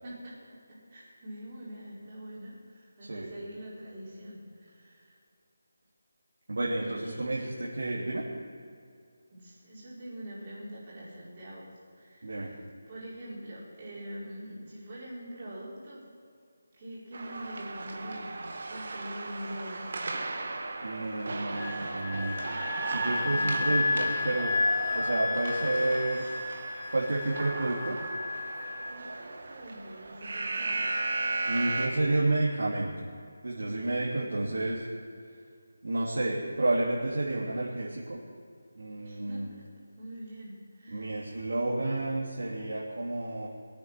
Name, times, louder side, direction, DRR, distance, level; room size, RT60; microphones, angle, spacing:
voice 1, 0.0-0.4 0.7-5.2 6.8-7.5 9.3-11.7 11.9-16.0 16.7-18.4 18.7-20.7 23.3-23.5 28.9-31.5 39.0-39.7 39.9-41.4, equal, 25° right, -7 dB, 4.8 m, -44 dB
voice 2, 6.5-8.2 12.2-12.5 20.8-24.6 24.9-26.3 26.9-28.0 31.4-33.1 33.4-34.8 35.8-38.2 38.8-39.5 40.9-43.5, right 2 dB, 80° right, -5 dB, 2.9 m, -30 dB
sound 1, 17.1-31.9, right 3 dB, 50° right, 1.6 m, -36 dB
Wind instrument woodwind instrument, 21.5-29.0, left 3 dB, 15° left, 1.5 m, -32 dB
22.0 x 8.9 x 6.0 m, 2.3 s
figure-of-eight pair, 175°, 0 cm